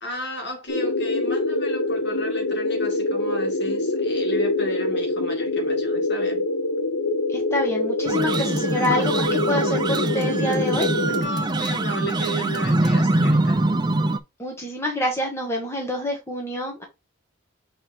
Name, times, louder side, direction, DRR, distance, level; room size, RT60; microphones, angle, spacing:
voice 1, 0.0-6.5 11.1-13.7, equal, 55° left, 2.1 m, -33 dB
sound 1, 0.7-11.2, left 2 dB, 85° left, 1.2 m, -25 dB
voice 2, 7.3-10.9 14.4-16.8, left 1 dB, 10° left, 1.4 m, -27 dB
sound 2, 8.1-14.2, right 2 dB, 20° right, 0.4 m, -23 dB
6.6 x 3.5 x 4.3 m
head